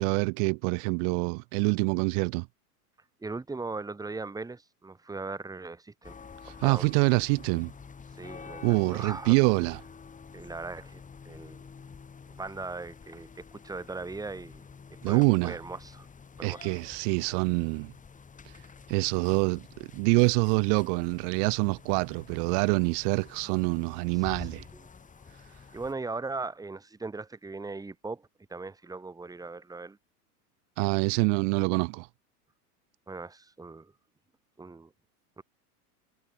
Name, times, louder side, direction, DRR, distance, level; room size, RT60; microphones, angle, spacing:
voice 1, 0.0-2.5 6.4-7.7 8.6-9.8 15.0-15.6 16.4-17.9 18.9-19.7 19.9-24.6 30.8-32.1, right 40 dB or more, 50° right, 1.3 m, -26 dB
voice 2, 3.2-6.2 6.5-6.9 8.1-9.4 10.3-11.6 12.3-14.6 14.9-16.1 16.4-16.7 24.1-24.5 24.7-24.9 25.7-30.0 33.1-33.9 34.6-34.9 35.4-35.5, right 3 dB, 10° right, 2.1 m, -39 dB
sound 1, 6.0-25.9, left 5 dB, 15° left, 4.8 m, -49 dB
hypercardioid pair, 120°, 47 cm